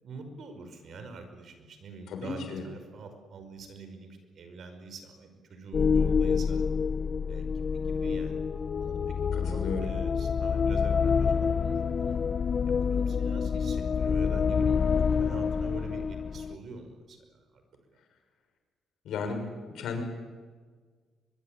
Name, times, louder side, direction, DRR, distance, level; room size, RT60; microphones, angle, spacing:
voice 1, 0.0-6.7 7.3-8.4 8.8-12.2 12.7-17.2 17.5-17.6, right 4 dB, 60° right, 7 dB, 5.2 m, -45 dB
voice 2, 2.1-2.6 9.5-9.9 19.0-19.4 19.7-20.0, left 4 dB, 75° left, 4 dB, 6.3 m, -33 dB
sound 1, 5.7-16.6, left 6 dB, 45° left, 0.9 m, -27 dB
23.0 x 22.0 x 8.8 m, 1.5 s
cardioid pair, 90°, 0 cm